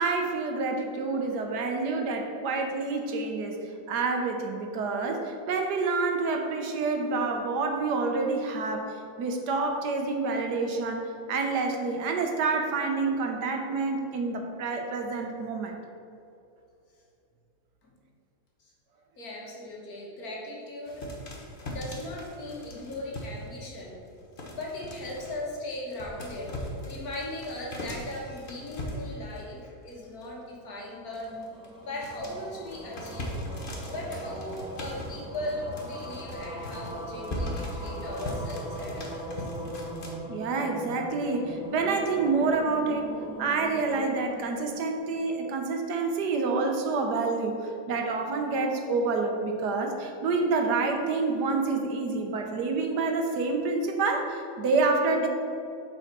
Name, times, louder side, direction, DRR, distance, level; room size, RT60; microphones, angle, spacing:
voice 1, 0.0-8.9 9.2-15.8 40.3-43.1 43.4-55.3, right 3 dB, 80° right, 3 dB, 1.5 m, -28 dB
voice 2, 19.2-21.1 21.6-23.9 24.5-26.6 26.9-31.4 31.8-33.4 33.9-39.5, left 1 dB, 65° left, -2 dB, 1.9 m, -38 dB
sound 1, 20.9-23.5 23.7-25.6 25.9-29.5 29.9-30.4 30.7-40.2, left 1 dB, 35° left, 1.2 m, -39 dB
sound 2, 31.0-45.4, right 1 dB, 5° right, 0.6 m, -40 dB
7.0 x 4.8 x 5.9 m, 2.6 s
omnidirectional pair, 1.7 m